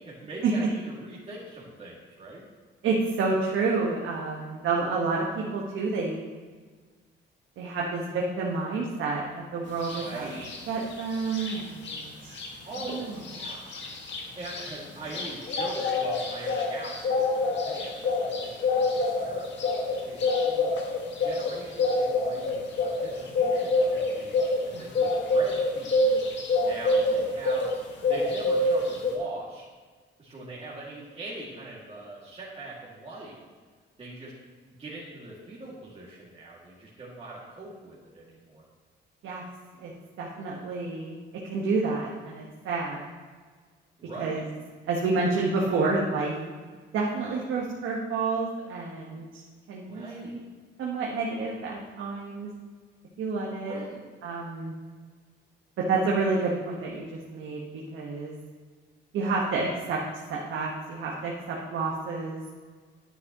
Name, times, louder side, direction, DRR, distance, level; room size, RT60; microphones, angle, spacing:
voice 1, 0.0-2.5 9.9-10.5 12.6-13.7 14.1-20.8 21.2-26.2 26.6-27.7 28.0-29.7 30.2-33.4 34.0-34.4 34.6-38.6 44.0-44.4 49.9-50.4 53.6-54.0, right 2 dB, 30° right, -7 dB, 2.4 m, -42 dB
voice 2, 2.8-6.2 7.6-10.3 10.7-12.4 12.9-13.2 24.7-24.8 39.2-39.4 39.8-39.9 40.2-41.2 41.4-43.0 44.2-44.4 44.9-46.3 46.9-49.2 49.7-50.4 50.8-52.5 53.2-53.8 54.2-54.7 55.8-57.6 57.9-58.3 59.1-60.0 60.3-62.4, right 3 dB, 75° right, -3 dB, 1.4 m, -29 dB
sound 1, 9.8-10.0 10.4-12.0 12.3-12.5 12.7-27.8 28.0-29.1, left 2 dB, 65° left, 1.8 m, -27 dB
10.0 x 9.6 x 3.0 m, 1.5 s
cardioid pair, 90°, 20 cm